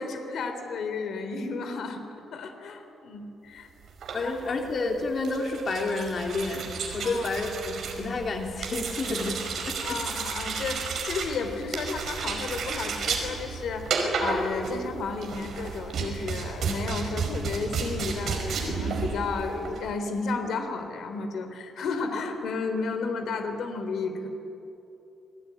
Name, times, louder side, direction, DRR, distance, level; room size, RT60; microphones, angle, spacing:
voice 1, 0.0-2.0 2.3-3.7 4.2-4.5 7.0-7.3 9.8-24.3, left 4 dB, 65° left, 7 dB, 3.4 m, -32 dB
sound 1, 3.9-19.9, right 5 dB, 55° right, 5.1 m, -32 dB
voice 2, 4.1-6.7 6.9-9.4 9.7-10.0, left 3 dB, 40° left, 2 dB, 3.0 m, -30 dB
29.0 x 20.5 x 10.0 m, 2.9 s
cardioid pair, 155°, 0 cm